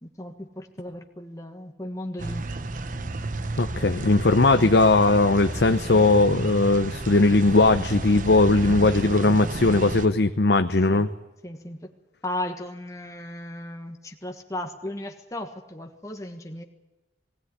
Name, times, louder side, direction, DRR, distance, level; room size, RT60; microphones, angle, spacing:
voice 1, 0.0-2.5 10.8-11.1 11.4-11.9 12.2-16.6, left 1 dB, 20° left, 3 dB, 1.5 m, -36 dB
sound 1, 2.2-10.1, right 2 dB, 50° right, 1.0 m, -32 dB
voice 2, 3.6-11.1, left 2 dB, 70° left, 8 dB, 0.8 m, -19 dB
20.0 x 17.5 x 9.8 m, 1.0 s
head